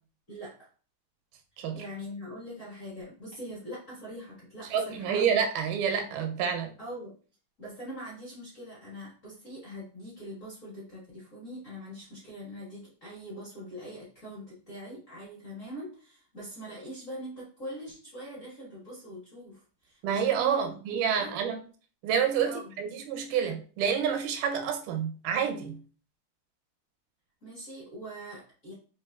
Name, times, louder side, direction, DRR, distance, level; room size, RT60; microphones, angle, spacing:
voice 1, 0.3-0.7 1.7-5.3 6.8-7.2 7.6-21.3 22.4-22.7 27.4-28.7, equal, 45° left, 1.0 m, -43 dB
voice 2, 4.7-6.7 20.0-21.6 22.0-25.8, right 7 dB, 80° right, 2.2 m, -28 dB
4.8 x 3.0 x 2.3 m
omnidirectional pair, 3.6 m